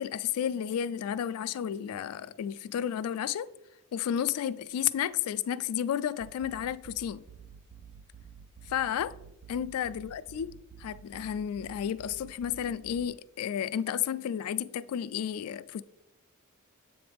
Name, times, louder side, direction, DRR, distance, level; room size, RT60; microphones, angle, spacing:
voice 1, 0.0-3.5 3.9-7.2 8.7-9.2 9.5-10.5 10.8-15.8, left 9 dB, 75° left, 0.3 m, -32 dB
sound 1, 6.2-13.0, right 7 dB, 60° right, 0.3 m, -51 dB
7.8 x 4.6 x 3.4 m
head